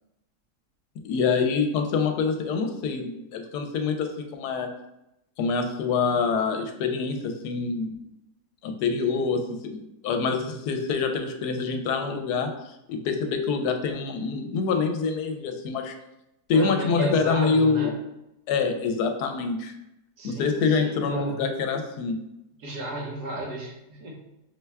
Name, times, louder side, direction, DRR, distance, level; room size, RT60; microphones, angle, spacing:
voice 1, 1.0-4.7 5.4-7.9 8.6-9.8 10.0-12.5 12.9-15.9 16.5-17.9 18.5-19.7 20.2-22.2, left 5 dB, 80° left, 5 dB, 1.1 m, -25 dB
voice 2, 16.5-17.9 20.2-21.4 22.6-24.3, right 2 dB, 80° right, -1 dB, 1.6 m, -34 dB
5.6 x 2.2 x 3.3 m, 0.88 s
omnidirectional pair, 1.7 m